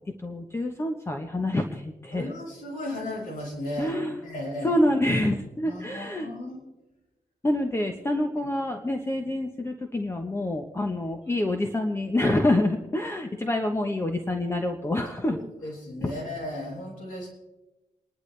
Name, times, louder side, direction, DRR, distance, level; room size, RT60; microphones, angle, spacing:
voice 1, 0.2-2.3 3.8-4.2 4.6-6.3 7.4-15.4, left 1 dB, 20° left, 4 dB, 1.1 m, -27 dB
voice 2, 2.1-3.9 4.2-4.8 5.6-6.6 15.2-17.3, left 1 dB, 80° left, -3 dB, 6.0 m, -35 dB
29.0 x 11.0 x 3.4 m, 1.1 s
cardioid pair, 110°, 14 cm